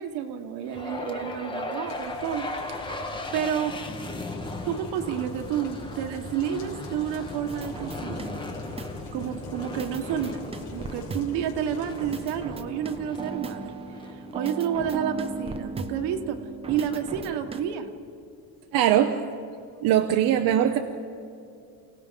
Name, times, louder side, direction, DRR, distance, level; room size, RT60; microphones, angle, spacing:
voice 1, 0.0-2.5 2.8-3.7 4.7-8.4 9.1-10.4 10.7-13.7 14.1-16.4 16.7-17.9, right 9 dB, 75° right, 5 dB, 1.8 m, -30 dB
sound 1, 0.7-14.9, left 2 dB, 10° left, 1.2 m, -37 dB
sound 2, 1.9-12.4, left 4 dB, 80° left, 4.7 m, -48 dB
sound 3, 7.5-9.3 9.8-11.6 12.0-17.6, right 3 dB, 15° right, 0.7 m, -37 dB
voice 2, 18.7-19.2 19.8-20.8, right 11 dB, 55° right, 5 dB, 0.9 m, -21 dB
29.5 x 17.0 x 5.3 m, 2.5 s
cardioid pair, 165°, 41 cm